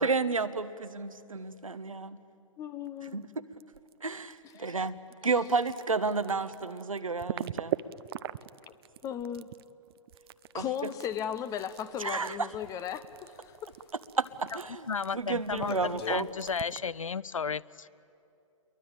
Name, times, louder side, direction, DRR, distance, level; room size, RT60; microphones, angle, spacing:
voice 1, 0.0-2.2 3.1-3.2 4.0-4.9 5.2-7.8 10.5-10.6 12.0-12.5 14.2-14.9 15.1-16.3, right 4 dB, 80° right, 12 dB, 1.2 m, -31 dB
voice 2, 2.6-3.2 4.5-4.8 9.0-9.5 10.5-13.7, left 9 dB, 20° left, 13 dB, 0.7 m, -36 dB
sound 1, 2.9-4.0 4.2-17.0, right 11 dB, 45° right, 0.7 m, -41 dB
sound 2, 11.1-13.9 14.2-14.6 14.9-16.6, left 8 dB, 50° left, 1.4 m, -46 dB
voice 3, 14.9-18.0, left 6 dB, 75° left, 22 dB, 0.5 m, -34 dB
29.5 x 23.0 x 8.8 m, 2.7 s
figure-of-eight pair, 115°, 17 cm